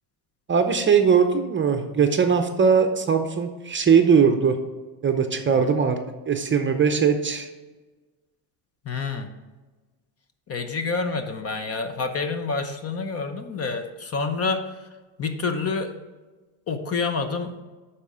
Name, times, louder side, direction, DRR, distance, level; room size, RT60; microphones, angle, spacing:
voice 1, 0.5-4.6 5.0-6.0 6.3-7.5, right 6 dB, 25° right, 6 dB, 0.6 m, -20 dB
voice 2, 8.8-9.3 10.5-14.8 15.2-15.9 16.7-17.5, left 4 dB, 35° left, 7 dB, 0.8 m, -28 dB
11.5 x 4.3 x 4.9 m, 1.3 s
cardioid pair, 115°, 43 cm